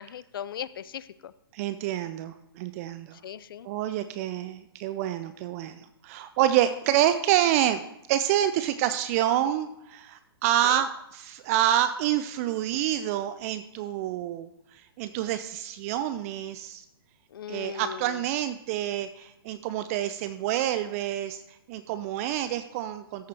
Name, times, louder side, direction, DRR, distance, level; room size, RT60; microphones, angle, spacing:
voice 1, 0.0-1.3 3.2-3.7 10.6-10.8 17.3-18.2, left 9 dB, 65° left, 17 dB, 0.5 m, -38 dB
voice 2, 1.5-3.2 3.7-7.8 8.1-14.5 15.0-16.8 17.5-21.4 21.7-23.3, right 12 dB, 40° right, 11 dB, 0.5 m, -27 dB
13.5 x 6.6 x 3.4 m, 0.84 s
figure-of-eight pair, 115°, 13 cm